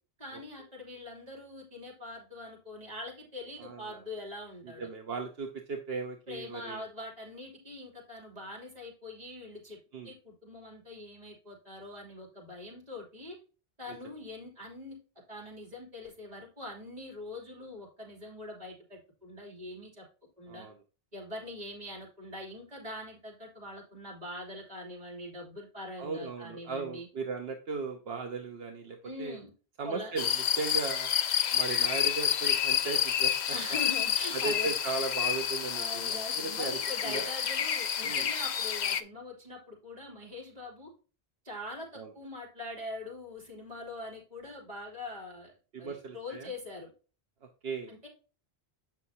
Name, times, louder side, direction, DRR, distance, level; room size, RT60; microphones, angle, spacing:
voice 1, 0.2-4.9 6.3-9.8 10.0-13.4 13.8-15.0 15.3-20.0 20.4-20.7 21.1-27.1 29.0-29.5 29.8-30.1 33.5-35.0 35.7-40.9 41.4-41.9 42.1-45.5 45.8-46.9 47.9-48.1, left 2 dB, 40° right, -1 dB, 3.1 m, -43 dB
voice 2, 3.6-4.0 4.6-6.8 9.9-10.1 20.5-20.8 26.0-29.4 29.8-30.3 30.6-31.1 31.5-33.6 34.3-37.2 38.0-38.3 41.9-42.1 45.7-46.5 47.6-47.9, right 4 dB, 75° right, 3 dB, 1.1 m, -37 dB
sound 1, 30.2-39.0, left 9 dB, 55° left, 0.6 m, -29 dB
8.1 x 5.9 x 2.7 m, 0.35 s
omnidirectional pair, 1.0 m